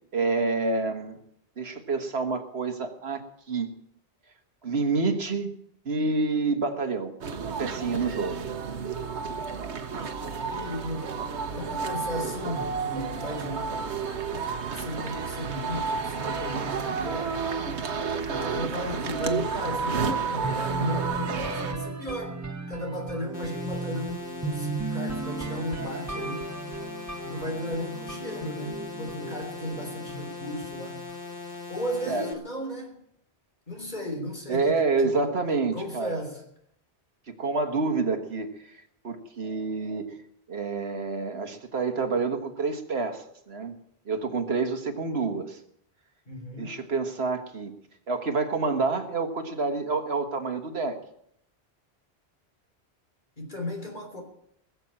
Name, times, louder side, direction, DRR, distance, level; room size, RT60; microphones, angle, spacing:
voice 1, 0.1-1.2 1.6-3.2 3.5-3.7 4.6-5.5 5.9-7.1 7.6-8.5 32.1-32.3 34.5-36.2 37.3-38.5 39.0-40.0 40.5-43.8 44.1-45.6 46.6-47.7 48.1-51.0, right 4 dB, 70° right, 6 dB, 1.8 m, -28 dB
sound 1, 7.2-21.7, right 5 dB, 85° right, 1.4 m, -31 dB
voice 2, 10.0-11.2 11.5-13.7 14.7-17.4 18.3-26.5 27.2-31.1 31.7-33.0 33.7-35.3 35.7-36.4 46.3-46.8 53.4-54.2, left 1 dB, 45° left, 3 dB, 3.6 m, -35 dB
sound 2, 20.4-30.3, right 4 dB, 20° right, 0.6 m, -35 dB
sound 3, 23.3-32.3, left 4 dB, 80° left, 2.0 m, -40 dB
20.0 x 7.3 x 8.8 m, 0.72 s
omnidirectional pair, 1.1 m